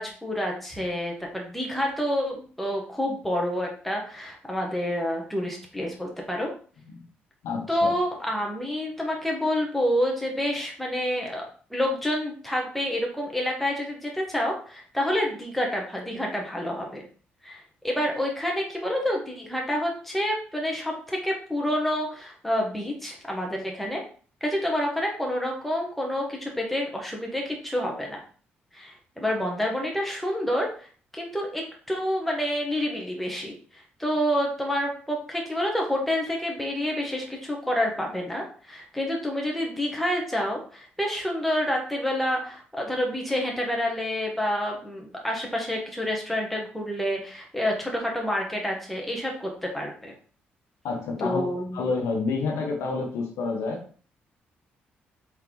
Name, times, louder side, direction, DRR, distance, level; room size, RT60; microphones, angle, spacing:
voice 1, 0.0-6.5 7.7-11.4 11.7-17.0 17.4-24.0 24.4-28.2 28.7-30.7 31.1-50.1 51.2-51.8, equal, 5° left, -1 dB, 1.2 m, -28 dB
voice 2, 7.4-8.0 50.8-51.4 51.7-53.8, left 4 dB, 75° left, 1 dB, 0.8 m, -29 dB
3.9 x 3.2 x 3.0 m, 0.42 s
supercardioid pair, 60°, 5 cm